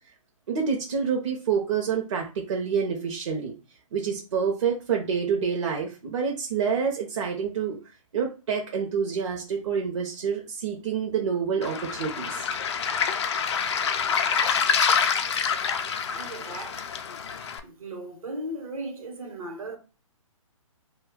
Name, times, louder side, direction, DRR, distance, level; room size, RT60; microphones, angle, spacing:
voice 1, 0.5-3.5 3.9-7.8 8.1-12.5, right 6 dB, 55° right, 0.7 m, -27 dB
Waves surf, 11.6-17.6, left 6 dB, 55° left, 0.4 m, -26 dB
voice 2, 16.1-16.9 17.6-19.8, right 1 dB, 80° right, 1.0 m, -37 dB
2.2 x 2.2 x 3.5 m
figure-of-eight pair, 135°, 18 cm